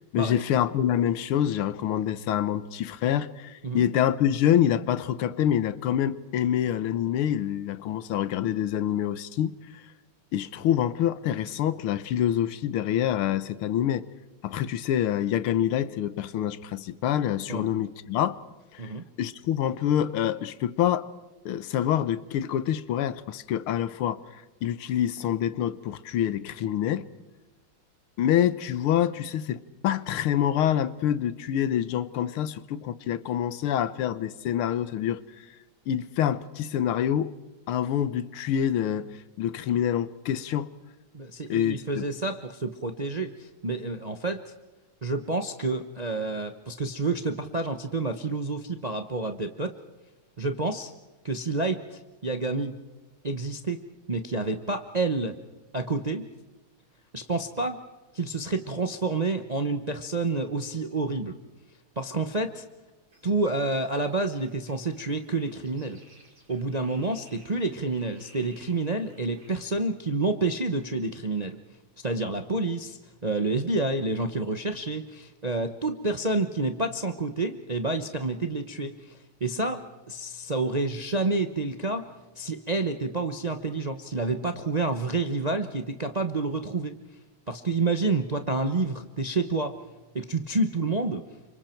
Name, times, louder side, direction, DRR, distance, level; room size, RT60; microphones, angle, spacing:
voice 1, 0.1-9.8 10.3-14.1 14.4-18.4 18.7-18.9 19.2-21.1 21.5-27.1 28.2-35.2 35.9-37.3 37.7-40.7 41.5-42.1, left 10 dB, 85° left, 1.8 m, -26 dB
voice 2, 41.1-44.5 45.0-49.7 50.4-50.9 51.2-52.7 53.2-53.8 54.1-55.4 55.7-56.3 57.1-57.8 58.1-61.4 62.0-62.6 63.2-66.0 66.5-71.6 72.0-82.1 82.4-86.9 87.5-89.8 90.1-91.2, right 3 dB, 40° right, 0.6 m, -29 dB
sound 1, 63.1-69.6, right 1 dB, 65° right, 6.2 m, -58 dB
30.0 x 26.0 x 4.5 m
omnidirectional pair, 2.3 m